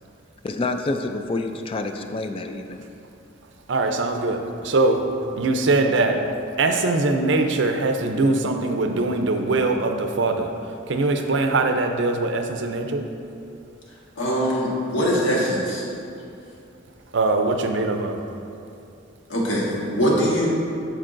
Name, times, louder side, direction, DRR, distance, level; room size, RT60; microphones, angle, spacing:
voice 1, 0.4-2.8, left 2 dB, 25° left, 7 dB, 0.3 m, -28 dB
voice 2, 3.7-5.0 5.4-6.2 6.6-10.5 10.9-13.0 17.1-18.2, right 2 dB, 60° right, 5 dB, 0.5 m, -22 dB
voice 3, 14.2-15.8 19.3-20.5, equal, 65° left, -5 dB, 1.4 m, -22 dB
12.0 x 4.6 x 2.6 m, 2.7 s
head